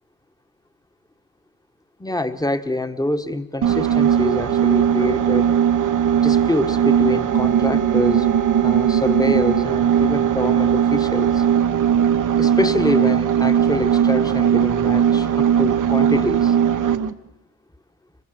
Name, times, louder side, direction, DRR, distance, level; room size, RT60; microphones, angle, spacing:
voice 1, 2.0-5.5 6.1-11.4 12.4-16.6, left 1 dB, 10° left, 9 dB, 1.4 m, -25 dB
sound 1, 3.6-17.1, right 9 dB, 60° right, 1.0 m, -18 dB
25.0 x 20.5 x 6.8 m, 0.96 s
cardioid pair, 70°, 35 cm